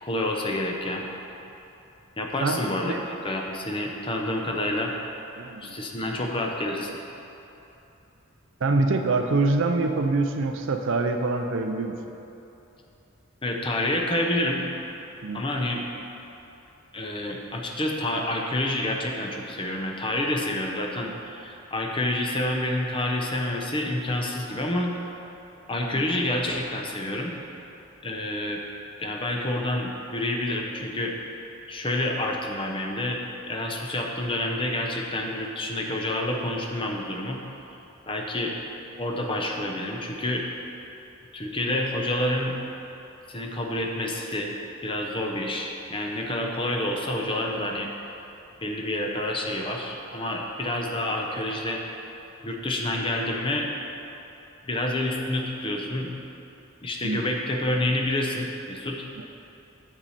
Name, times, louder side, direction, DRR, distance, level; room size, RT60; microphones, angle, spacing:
voice 1, 0.0-1.0 2.2-3.0 3.2-4.9 5.6-6.9 13.4-14.7 15.3-15.8 16.9-25.0 25.7-27.4 28.0-28.6 29.0-31.2 31.7-37.4 38.1-38.6 39.0-40.5 41.3-42.6 43.3-44.5 44.8-47.9 48.6-51.8 52.4-53.7 54.7-56.1 56.8-59.0, left 1 dB, 25° left, 1 dB, 0.7 m, -28 dB
voice 2, 2.4-3.0 5.4-5.8 6.2-6.3 8.6-11.9 15.2-15.5 25.9-26.0 57.0-57.3 59.2-59.3, right 3 dB, 65° right, 5 dB, 0.5 m, -25 dB
8.8 x 6.5 x 4.2 m, 2.9 s
head